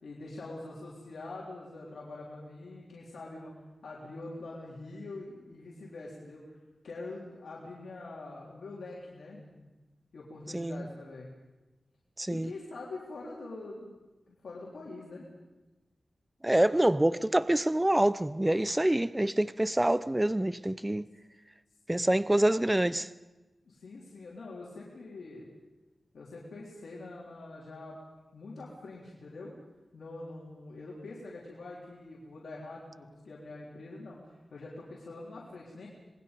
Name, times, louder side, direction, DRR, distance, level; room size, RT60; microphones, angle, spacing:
voice 1, 0.0-3.5 3.8-6.6 6.8-9.7 10.1-11.3 12.3-13.9 14.3-15.3 23.7-25.5 26.1-28.0 28.3-29.5 29.9-35.9, left 2 dB, 85° left, 3.7 m, -44 dB
voice 2, 10.5-10.8 12.2-12.5 16.4-21.1 21.9-23.1, right 1 dB, 15° right, 0.6 m, -26 dB
26.5 x 21.0 x 5.4 m
wide cardioid pair, 75°, 0 cm